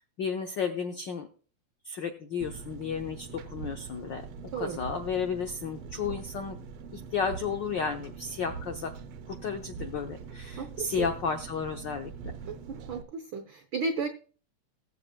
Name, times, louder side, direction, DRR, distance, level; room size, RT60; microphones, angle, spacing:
voice 1, 0.2-1.3 1.8-4.2 4.6-6.6 6.9-8.9 9.3-12.1, left 6 dB, 85° left, 5 dB, 1.0 m, -33 dB
Engine, 2.4-13.0, right 6 dB, 70° right, 1.7 m, -43 dB
voice 2, 10.6-11.1 12.5-14.1, right 4 dB, 85° right, 8 dB, 1.1 m, -34 dB
20.5 x 7.4 x 2.3 m, 0.40 s
omnidirectional pair, 3.3 m